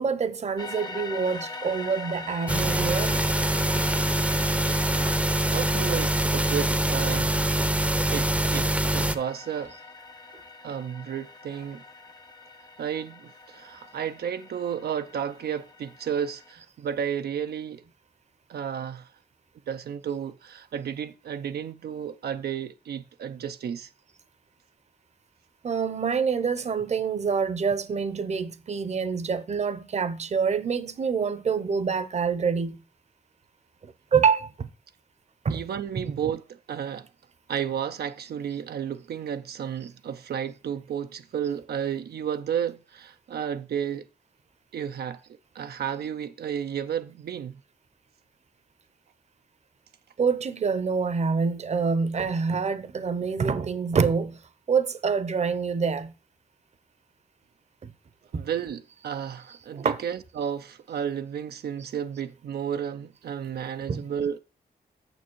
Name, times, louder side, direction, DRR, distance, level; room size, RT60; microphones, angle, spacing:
voice 1, 0.0-3.2 25.6-32.8 33.8-34.7 35.4-35.7 50.2-54.4 54.7-56.1 57.8-57.9 58.3-58.4 59.7-60.0 63.9-64.0, right 5 dB, 45° right, 0.7 m, -26 dB
sound 1, 0.6-16.5, left 3 dB, 25° left, 0.8 m, -42 dB
sound 2, 2.5-9.2, right 1 dB, 10° right, 0.6 m, -24 dB
voice 2, 5.5-7.3 8.1-9.7 10.6-11.8 12.8-17.8 18.5-19.1 19.7-23.9 35.5-37.1 37.5-44.1 44.7-45.2 45.5-47.6 58.3-64.4, right 8 dB, 85° right, 0.5 m, -32 dB
8.9 x 6.9 x 4.5 m
wide cardioid pair, 160°, 16 cm